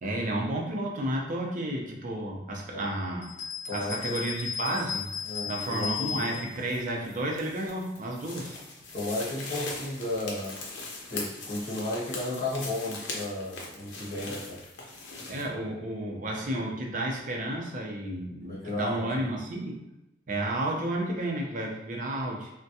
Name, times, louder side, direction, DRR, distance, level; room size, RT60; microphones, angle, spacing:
voice 1, 0.0-3.3 3.7-5.1 5.5-8.6 15.3-19.8 20.3-22.5, right 1 dB, 45° right, 0 dB, 0.6 m, -32 dB
sound 1, 3.2-6.5, left 7 dB, 45° left, 0.4 m, -35 dB
voice 2, 3.7-4.2 5.3-6.3 8.9-10.6 11.1-14.6 18.5-19.3, left 1 dB, 60° left, -7 dB, 1.0 m, -34 dB
sound 2, 3.9-15.5, left 3 dB, 80° left, 0.7 m, -42 dB
3.4 x 2.2 x 2.7 m, 0.92 s
head